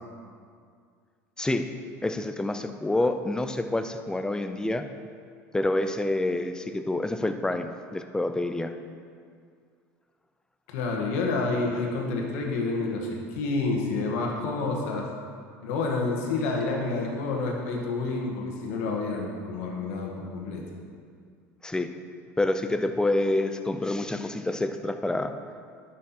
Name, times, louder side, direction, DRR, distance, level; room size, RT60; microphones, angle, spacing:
voice 1, 2.0-4.9 5.5-8.7 21.6-21.9 22.4-25.3, left 2 dB, 10° left, 8 dB, 0.6 m, -27 dB
voice 2, 10.7-15.1 15.6-20.6, left 3 dB, 80° left, 0 dB, 1.7 m, -29 dB
11.0 x 6.2 x 4.4 m, 2.2 s
supercardioid pair, 95°, 8 cm